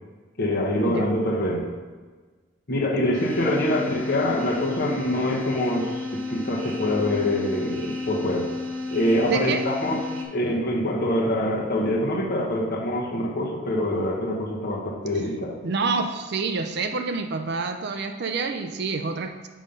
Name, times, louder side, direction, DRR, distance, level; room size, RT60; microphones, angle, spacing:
voice 1, 0.4-1.6 2.7-8.5 8.9-10.0 10.3-15.6, left 1 dB, 50° left, -3 dB, 1.1 m, -25 dB
sound 1, 3.1-10.2, left 2 dB, 85° right, 1.3 m, -32 dB
voice 2, 9.3-9.7 15.6-19.5, right 4 dB, 55° right, 7 dB, 0.5 m, -28 dB
6.3 x 5.5 x 5.1 m, 1.4 s
head